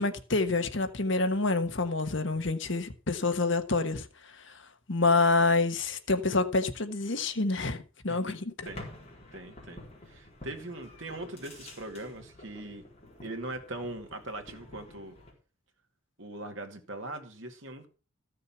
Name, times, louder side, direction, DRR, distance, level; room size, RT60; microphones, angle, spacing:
voice 1, 0.0-4.1 4.9-8.4, left 3 dB, 55° left, 1.3 m, -27 dB
sound 1, 8.6-15.3, left 1 dB, 30° left, 4.5 m, -49 dB
voice 2, 9.3-12.8 13.2-15.2 16.2-17.9, right 2 dB, 60° right, 2.1 m, -41 dB
14.0 x 6.7 x 5.8 m
head